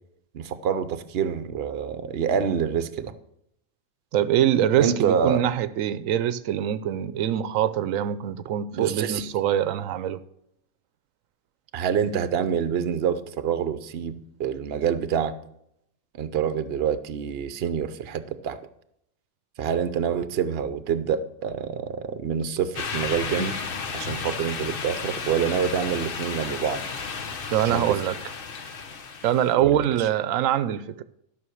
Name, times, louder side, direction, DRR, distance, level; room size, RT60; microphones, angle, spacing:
voice 1, 0.3-3.1 4.8-5.4 8.7-9.3 11.7-15.4 16.2-18.6 19.6-23.6 23.9-26.8 27.6-28.0 29.6-30.1, right 7 dB, 55° right, 0.9 m, -27 dB
voice 2, 4.1-10.2 27.5-28.2 29.2-31.0, right 10 dB, 90° right, 1.0 m, -24 dB
sound 1, 22.7-29.5, left 5 dB, 50° left, 1.0 m, -33 dB
12.5 x 5.9 x 6.3 m
omnidirectional pair, 1.3 m